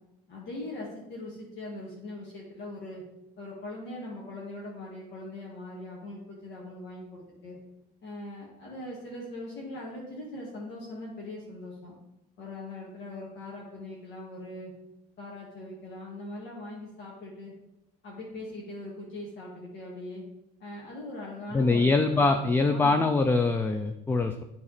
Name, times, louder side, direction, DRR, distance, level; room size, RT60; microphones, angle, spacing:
voice 1, 0.3-3.0 3.4-7.6 8.0-11.9 12.4-14.7 15.2-17.6 18.0-20.3 20.6-23.0, left 1 dB, 60° left, -5 dB, 2.1 m, -41 dB
voice 2, 21.5-24.4, left 3 dB, 10° left, 7 dB, 0.4 m, -23 dB
8.7 x 4.1 x 4.2 m, 0.91 s
supercardioid pair, 105°, 20 cm